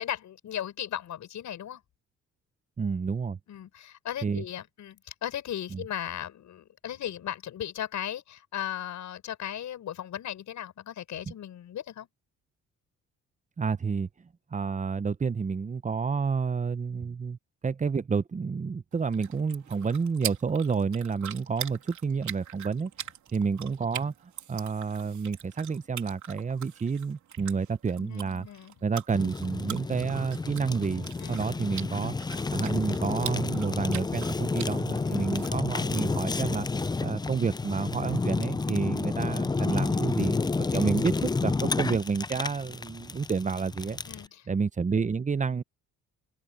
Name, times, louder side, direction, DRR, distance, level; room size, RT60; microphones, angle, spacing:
voice 1, 0.0-1.8 3.5-12.1 28.0-28.7 31.2-31.4 35.0-35.3 40.7-41.0 44.0-44.4, left 10 dB, 70° left, 6.6 m, -37 dB
voice 2, 2.8-3.4 4.2-4.4 5.7-5.8 11.3-11.4 13.6-17.4 17.6-22.9 23.3-24.1 24.5-28.5 28.8-32.1 32.5-36.7 37.0-44.0 44.5-45.6, right 5 dB, 25° right, 0.7 m, -29 dB
sound 1, 18.9-35.5, right 11 dB, 70° right, 3.4 m, -43 dB
Fire, 29.1-44.3, left 4 dB, 15° left, 0.4 m, -30 dB
cardioid pair, 90°, 30 cm